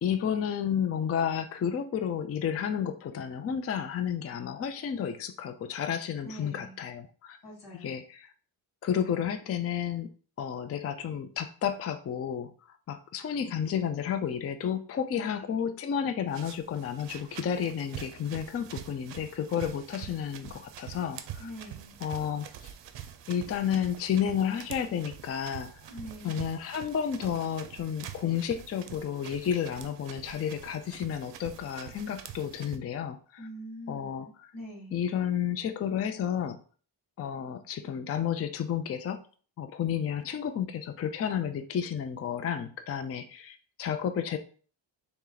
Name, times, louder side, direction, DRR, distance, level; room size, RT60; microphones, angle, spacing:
voice 1, 0.0-7.4 7.8-8.3 8.8-10.1 10.4-12.5 12.9-21.5 22.0-22.7 23.3-25.9 26.2-33.5 33.9-34.5 34.9-36.6 37.2-39.2 39.6-44.4, left 8 dB, 30° left, 9 dB, 0.4 m, -31 dB
voice 2, 6.2-6.8 7.4-7.9 15.1-15.6 21.4-21.9 25.9-26.5 33.4-35.0, equal, 90° left, -2 dB, 2.1 m, -44 dB
sound 1, 16.3-32.8, right 10 dB, 60° right, 0.6 m, -45 dB
3.3 x 3.0 x 3.8 m, 0.41 s
cardioid pair, 75°, 48 cm